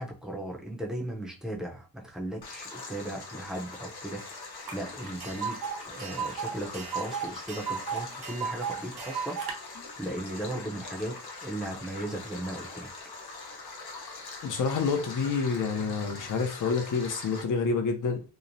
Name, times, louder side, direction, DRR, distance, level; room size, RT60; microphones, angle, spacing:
voice 1, 0.0-12.9, right 1 dB, ahead, 0.5 m, -37 dB
Stream, 2.4-17.4, left 3 dB, 90° left, 0.8 m, -43 dB
Tick, 4.7-4.8 5.0-9.5, right 7 dB, 80° right, 0.7 m, -35 dB
voice 2, 14.4-18.2, left 5 dB, 55° left, 0.5 m, -28 dB
2.9 x 2.0 x 2.6 m
wide cardioid pair, 135°, 37 cm